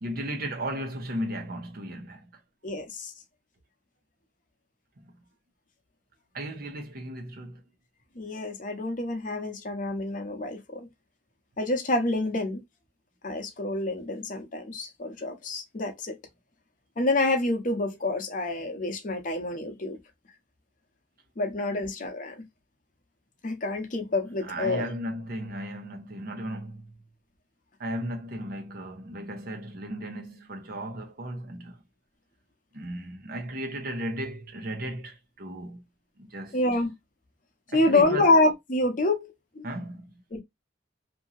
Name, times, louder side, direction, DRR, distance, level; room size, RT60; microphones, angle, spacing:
voice 1, 0.0-2.2 5.0-5.1 6.3-7.6 21.7-21.8 24.4-26.9 27.8-31.8 32.7-35.8 36.2-36.6 37.7-38.3 39.6-40.1, right 1 dB, 55° right, 0.8 m, -35 dB
voice 2, 2.6-3.1 8.2-10.9 11.6-12.6 13.2-16.2 17.0-20.0 21.4-22.4 23.4-24.9 36.5-36.9 37.7-39.7 40.3-40.4, left 2 dB, 45° left, 0.7 m, -27 dB
2.8 x 2.7 x 2.5 m
head